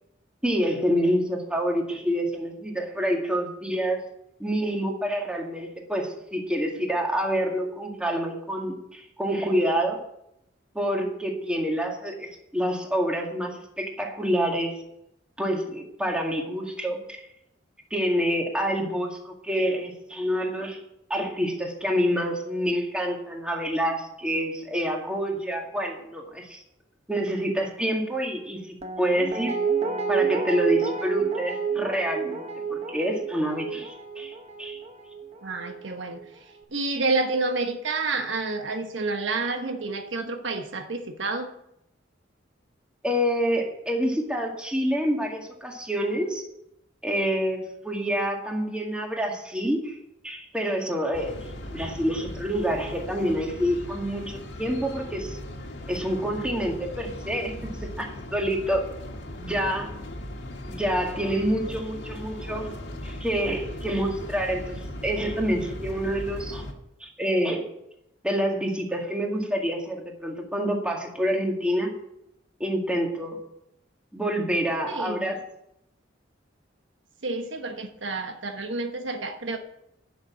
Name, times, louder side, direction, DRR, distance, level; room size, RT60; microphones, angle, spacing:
voice 1, 0.4-4.0 4.4-10.0 10.7-14.8 15.4-17.2 17.9-20.8 21.1-26.6 27.1-29.6 30.1-34.8 43.0-46.4 47.0-49.9 50.2-51.4 51.7-55.4 55.9-58.9 59.4-59.9 60.6-62.7 63.0-66.6 67.0-67.7 68.2-71.9 72.6-73.4 74.1-75.4, equal, 5° right, 1 dB, 2.0 m, -27 dB
Guitar, 28.8-35.8 36.2-36.3, right 6 dB, 35° right, 1.1 m, -29 dB
voice 2, 35.4-36.2 36.7-41.5 74.9-75.4 77.2-79.6, right 3 dB, 75° right, 5 dB, 1.2 m, -29 dB
sound 1, 51.1-66.7, left 1 dB, 65° left, 1.8 m, -38 dB
11.0 x 6.6 x 8.7 m, 0.80 s
head